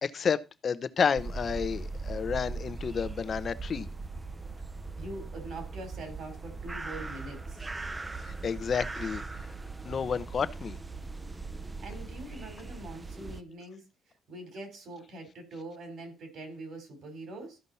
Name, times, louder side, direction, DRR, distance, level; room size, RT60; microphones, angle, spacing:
voice 1, 0.0-3.9 8.2-9.2 9.8-10.8, left 6 dB, 50° left, 0.8 m, -30 dB
sound 1, 1.1-13.4, right 3 dB, 20° right, 0.6 m, -39 dB
voice 2, 5.0-7.6 11.8-13.8 14.3-17.6, right 2 dB, 70° right, 4.2 m, -43 dB
13.5 x 5.3 x 4.2 m
cardioid pair, 90°, 0 cm